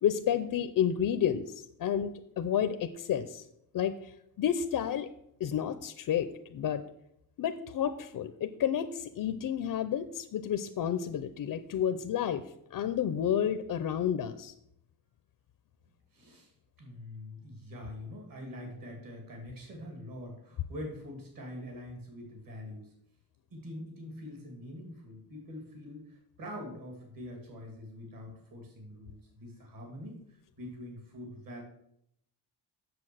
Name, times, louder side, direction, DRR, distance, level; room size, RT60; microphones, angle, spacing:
voice 1, 0.0-3.5 3.7-4.1 4.4-5.1 5.4-6.8 7.4-12.4 12.7-14.5, left 9 dB, 50° left, 10 dB, 0.5 m, -30 dB
voice 2, 16.1-16.5 16.8-22.9 23.5-31.6, left 1 dB, 50° right, 1 dB, 2.7 m, -44 dB
7.8 x 6.9 x 6.2 m, 0.75 s
wide cardioid pair, 170°, 44 cm